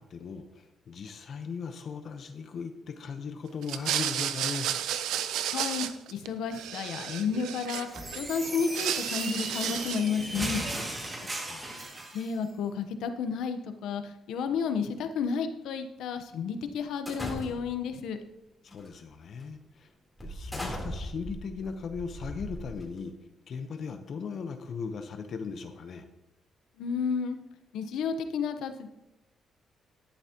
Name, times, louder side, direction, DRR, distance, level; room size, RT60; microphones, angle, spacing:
voice 1, 0.0-4.7 11.1-11.9 18.6-19.9 20.2-23.1 23.5-26.1, left 5 dB, 55° left, 7 dB, 0.9 m, -38 dB
sound 1, 3.6-6.3 6.5-8.2 8.5-10.2, right 10 dB, 90° right, 0.6 m, -32 dB
voice 2, 5.5-7.9 8.2-10.6 12.1-18.2 26.8-27.4 27.7-28.9, left 6 dB, 80° left, 8 dB, 0.9 m, -31 dB
sound 2, 7.9-12.3, right 1 dB, 30° right, 2.2 m, -36 dB
sound 3, 17.1-17.9 18.7-18.9 19.4-19.5 20.2-23.1, equal, 5° left, 3.4 m, -38 dB
11.5 x 11.0 x 2.9 m, 0.92 s
cardioid pair, 90°, 0 cm